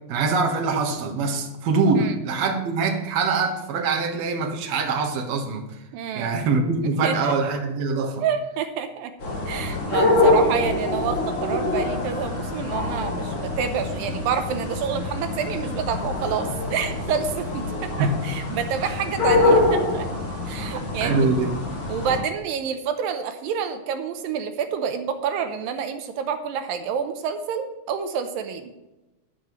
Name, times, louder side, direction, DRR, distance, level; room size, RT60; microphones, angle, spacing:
voice 1, 0.1-5.7 6.1-8.2 18.0-18.2 18.8-19.0 20.7-21.5, right 4 dB, 60° right, 2.2 m, -24 dB
voice 2, 5.9-6.3 6.8-7.3 8.2-9.1 9.5-17.9 18.2-20.1 20.5-21.3 21.9-28.7, right 7 dB, 85° right, 2.5 m, -28 dB
sound 1, 9.2-22.2, left 2 dB, 40° left, 2.8 m, -25 dB
13.0 x 10.5 x 3.1 m
omnidirectional pair, 4.0 m